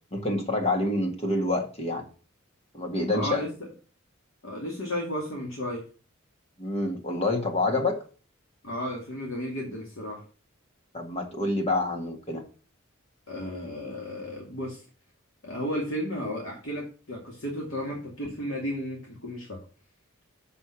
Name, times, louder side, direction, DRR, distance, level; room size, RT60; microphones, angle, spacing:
voice 1, 0.1-2.1 2.7-3.5 6.6-8.0 10.9-12.5, left 2 dB, 30° left, 3 dB, 1.8 m, -27 dB
voice 2, 3.1-3.7 4.4-5.8 8.6-10.2 13.3-14.8 15.4-19.6, equal, 70° left, -1 dB, 2.4 m, -33 dB
6.9 x 6.6 x 5.8 m, 0.37 s
head